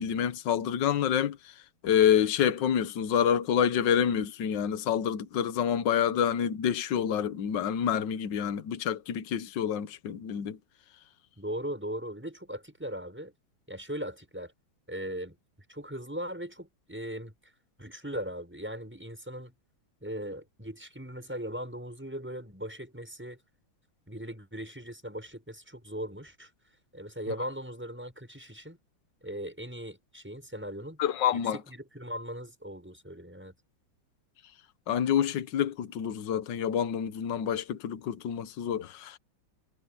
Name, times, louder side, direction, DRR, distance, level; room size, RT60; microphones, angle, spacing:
voice 1, 0.0-1.4 1.8-10.6 31.0-31.6 34.9-39.2, left 9 dB, 65° left, 1.7 m, -27 dB
voice 2, 11.4-13.3 13.7-14.5 14.9-15.3 15.7-17.3 17.8-19.5 20.0-23.4 24.1-26.5 26.9-28.8 29.2-31.0 31.3-33.5, equal, 5° right, 6.7 m, -39 dB
omnidirectional pair, 2.2 m